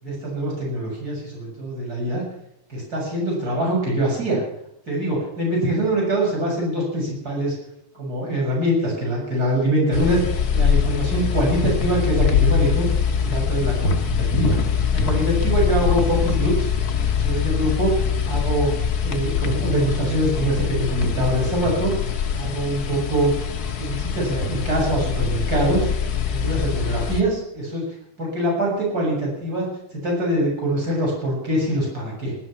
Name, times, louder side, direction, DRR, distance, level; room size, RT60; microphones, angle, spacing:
voice 1, 0.0-2.2 2.7-4.4 4.9-7.6 7.9-12.9 13.2-14.6 14.9-16.7 17.0-17.9 18.3-18.7 19.0-21.9 22.3-23.3 23.8-25.9 26.3-27.8 28.2-29.7 29.9-32.4, right 1 dB, 30° right, -2 dB, 7.4 m, -23 dB
sound 1, 9.9-27.2, left 7 dB, 55° left, 1.0 m, -23 dB
18.5 x 13.0 x 5.9 m, 0.76 s
omnidirectional pair, 3.5 m